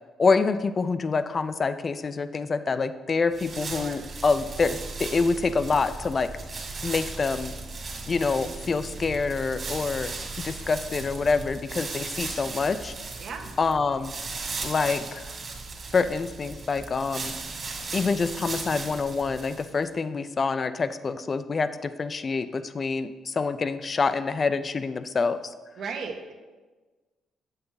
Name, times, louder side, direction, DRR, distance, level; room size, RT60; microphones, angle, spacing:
voice 1, 0.2-6.3 6.8-7.5 8.1-12.9 13.6-14.1 14.6-15.4 15.9-17.3 17.9-25.5, left 4 dB, 40° left, 12 dB, 0.5 m, -26 dB
sound 1, 3.3-19.8, right 4 dB, 45° right, 2.1 m, -37 dB
Bus, 4.0-11.5, right 2 dB, 90° right, 1.2 m, -42 dB
voice 2, 13.2-13.5 25.8-26.3, right 5 dB, 65° right, 4 dB, 1.2 m, -35 dB
8.3 x 7.9 x 4.0 m, 1.3 s
cardioid pair, 90°, 0 cm